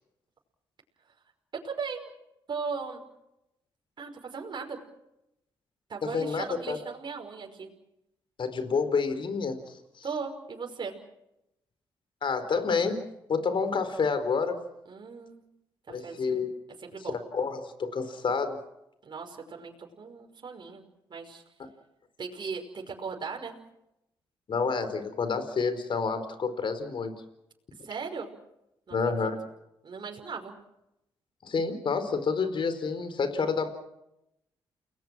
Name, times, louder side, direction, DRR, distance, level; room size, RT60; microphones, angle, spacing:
voice 1, 1.5-2.1 2.5-3.0 4.0-4.8 5.9-7.7 10.0-10.9 14.9-15.4 16.0-16.4 16.8-17.2 19.0-20.8 21.1-21.4 22.2-23.5 27.8-28.3 28.9-29.3 29.8-30.5, right 5 dB, 50° right, 1 dB, 5.5 m, -37 dB
voice 2, 6.0-6.8 8.4-10.0 12.2-13.0 13.3-14.6 15.9-16.5 17.1-18.6 24.5-27.1 28.9-29.4 31.4-33.7, left 5 dB, 55° left, 10 dB, 4.4 m, -29 dB
30.0 x 20.5 x 6.3 m, 0.85 s
supercardioid pair, 55°, 10 cm